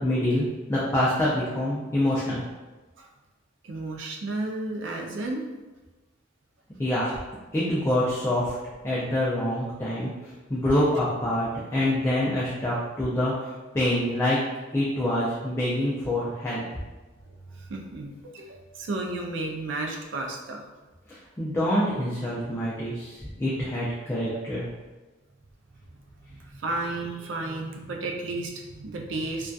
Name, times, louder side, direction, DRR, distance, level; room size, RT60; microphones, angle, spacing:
voice 1, 0.0-2.4 6.8-7.1 7.5-8.6 8.8-10.1 10.5-14.4 14.7-16.6 21.1-24.6, left 1 dB, 15° left, -8 dB, 0.3 m, -26 dB
voice 2, 3.6-5.5 17.5-20.6 26.3-29.5, right 2 dB, 70° right, 1 dB, 0.4 m, -33 dB
2.5 x 2.2 x 2.3 m, 1.2 s
head